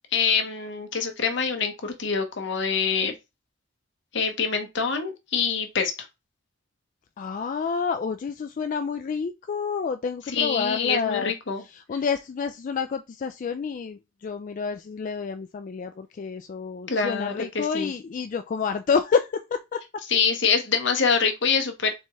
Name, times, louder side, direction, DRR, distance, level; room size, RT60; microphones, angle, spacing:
voice 1, 0.1-3.1 4.1-5.9 10.3-11.6 16.9-17.9 20.1-21.9, left 5 dB, 65° left, 0.9 m, -25 dB
voice 2, 7.2-11.3 11.9-19.8, left 5 dB, 40° left, 0.3 m, -28 dB
4.2 x 3.4 x 3.0 m
head